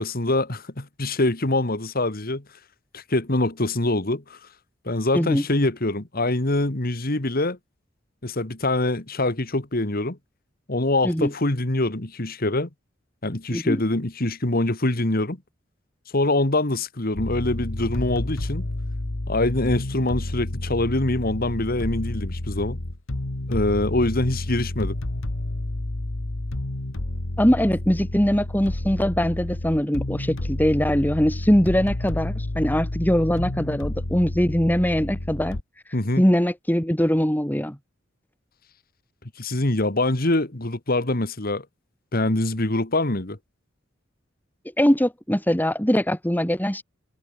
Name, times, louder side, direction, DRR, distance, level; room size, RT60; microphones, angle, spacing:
voice 1, 0.0-2.4 2.9-4.4 4.9-7.6 8.2-10.2 10.7-12.7 13.2-15.4 16.1-18.7 19.3-22.8 23.5-25.0 35.9-36.2 39.4-41.7 42.1-43.4, left 2 dB, 50° left, 2.1 m, -24 dB
sound 1, 17.1-35.6, left 1 dB, 80° left, 1.7 m, -30 dB
voice 2, 27.4-35.6 36.2-37.8 44.8-46.8, equal, 10° left, 2.6 m, -22 dB
head